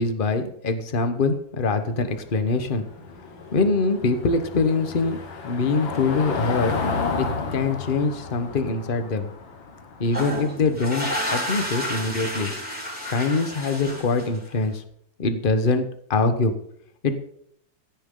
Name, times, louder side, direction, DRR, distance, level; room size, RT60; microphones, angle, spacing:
voice 1, 0.0-2.8 3.5-5.2 5.4-6.8 7.2-7.3 7.5-9.3 10.0-12.5 13.1-14.8 15.2-15.8 16.1-16.5 17.0-17.2, left 3 dB, 30° left, 8 dB, 1.1 m, -23 dB
Car passing by / Engine, 1.6-12.2, left 4 dB, 85° left, 2.4 m, -32 dB
sound 1, 10.0-14.6, equal, 5° right, 4.6 m, -30 dB
16.0 x 10.5 x 3.9 m, 0.69 s
omnidirectional pair, 2.1 m